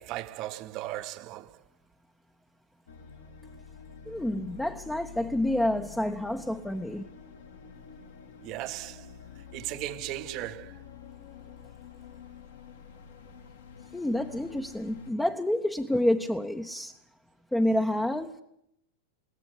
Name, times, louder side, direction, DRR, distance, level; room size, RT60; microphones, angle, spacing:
voice 1, 0.0-1.6 8.4-9.1 9.5-10.8, right 15 dB, 40° right, 0.9 m, -37 dB
sound 1, 2.9-15.1, left 7 dB, 65° left, 2.2 m, -48 dB
voice 2, 4.1-7.1 13.9-17.0 17.5-18.3, left 1 dB, 5° left, 0.8 m, -28 dB
21.0 x 17.5 x 8.4 m
figure-of-eight pair, 90°, 0 cm